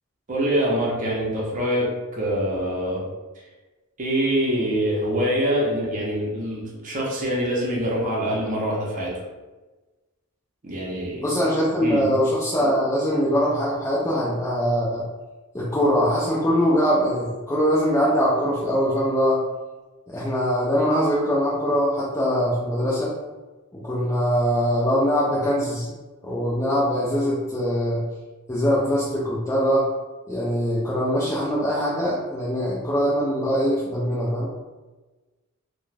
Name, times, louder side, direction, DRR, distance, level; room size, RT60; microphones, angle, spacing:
voice 1, 0.3-3.0 4.0-9.2 10.6-11.2 11.8-12.0, equal, 35° right, -4 dB, 0.7 m, -25 dB
voice 2, 11.2-15.0 15.5-19.4 20.1-23.2 23.7-25.9 26.2-28.0 28.5-29.9 30.3-34.5, equal, 15° left, -8 dB, 0.4 m, -22 dB
2.4 x 2.1 x 3.2 m, 1.2 s
head